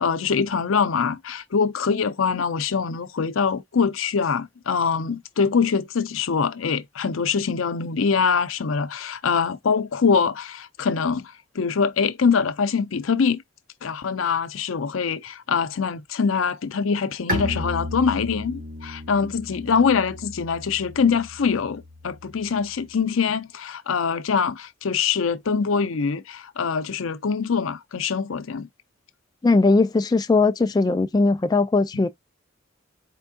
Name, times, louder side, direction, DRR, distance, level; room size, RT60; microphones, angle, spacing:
voice 1, 0.0-13.4 13.8-28.7, left 5 dB, 85° left, 0.6 m, -24 dB
Bowed string instrument, 17.3-22.9, left 1 dB, 45° right, 1.9 m, -34 dB
voice 2, 29.4-32.1, left 3 dB, 20° left, 0.3 m, -19 dB
4.5 x 3.4 x 2.7 m
head